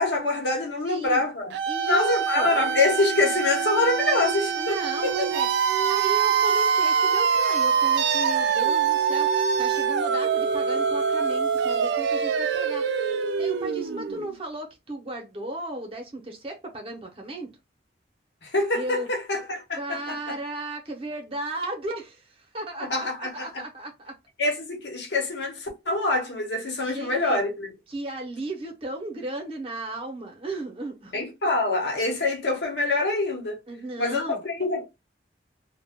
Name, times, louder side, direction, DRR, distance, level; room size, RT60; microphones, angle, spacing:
voice 1, 0.0-1.5 1.8-4.8 5.0-5.3 18.4-20.4 22.8-23.6 24.4-27.7 31.1-33.6 34.0-34.8, left 2 dB, 80° left, 0.9 m, -25 dB
voice 2, 0.8-1.2 1.7-2.5 4.6-12.8 13.4-17.5 18.7-19.1 19.8-24.2 26.8-27.4 27.9-31.2 33.7-34.4, right 2 dB, 35° right, 0.7 m, -35 dB
sound 1, 1.5-14.3, right 7 dB, 75° right, 0.3 m, -24 dB
2.3 x 2.1 x 3.4 m
head